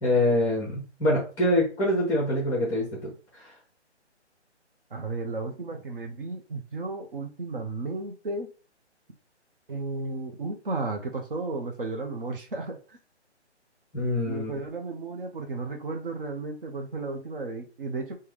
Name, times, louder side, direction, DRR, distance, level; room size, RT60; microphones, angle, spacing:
voice 1, 0.0-3.5 13.9-14.5, left 1 dB, 5° left, -4 dB, 0.7 m, -25 dB
voice 2, 4.9-8.5 9.7-13.0 14.3-18.1, right 3 dB, 50° right, 3 dB, 0.7 m, -34 dB
3.4 x 2.2 x 3.2 m, 0.36 s
figure-of-eight pair, 145°, 35 cm